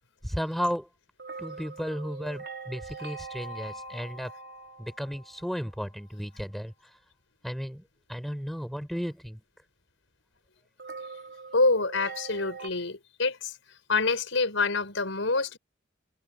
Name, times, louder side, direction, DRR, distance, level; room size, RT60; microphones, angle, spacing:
voice 1, 0.2-0.9 1.4-4.3 4.8-6.7 7.4-7.8 8.1-9.4, equal, ahead, 4.7 m, -34 dB
sound 1, 1.2-6.1 10.8-12.7, right 3 dB, 60° right, 4.0 m, -42 dB
voice 2, 11.5-13.5 13.9-15.6, left 3 dB, 85° left, 5.0 m, -26 dB
head